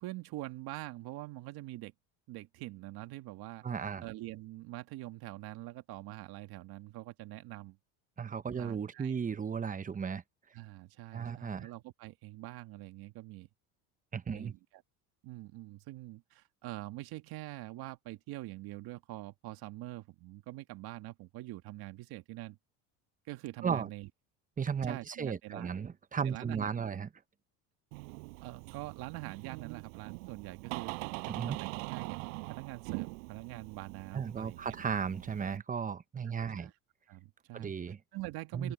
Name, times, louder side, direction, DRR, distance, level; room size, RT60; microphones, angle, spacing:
voice 1, 0.0-1.9 2.3-3.6 4.0-7.8 8.6-9.2 10.5-13.5 14.3-14.8 15.2-22.6 23.3-24.1 24.8-25.7 26.2-27.0 28.4-34.6 36.4-36.7 37.1-37.7 38.1-38.7, right 18 dB, 65° right, 1.9 m, -44 dB
voice 2, 3.6-4.0 8.2-10.2 11.1-11.7 14.1-14.5 23.6-23.9 24.6-27.1 31.3-31.6 34.1-36.7 37.5-38.0 38.5-38.7, right 6 dB, 20° right, 0.8 m, -35 dB
Door, 27.9-35.6, right 33 dB, 85° right, 6.6 m, -43 dB
open air
supercardioid pair, 110°, 41 cm